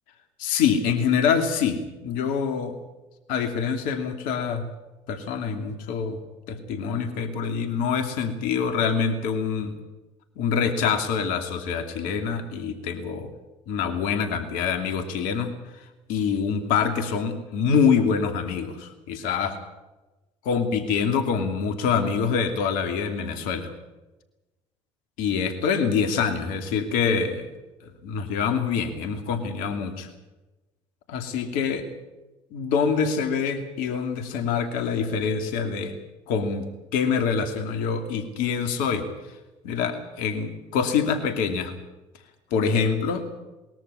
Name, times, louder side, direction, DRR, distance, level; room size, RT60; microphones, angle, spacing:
voice 1, 0.4-2.8 3.3-4.7 5.1-6.2 6.5-9.7 10.4-13.3 13.7-15.8 16.1-19.6 20.4-23.7 25.2-27.5 28.0-30.1 31.1-31.8 32.5-35.9 36.3-36.6 36.9-39.1 39.6-41.7 42.5-43.3, left 6 dB, 70° left, 8 dB, 2.8 m, -25 dB
21.0 x 13.5 x 10.0 m, 1.1 s
hypercardioid pair, 60°, 15 cm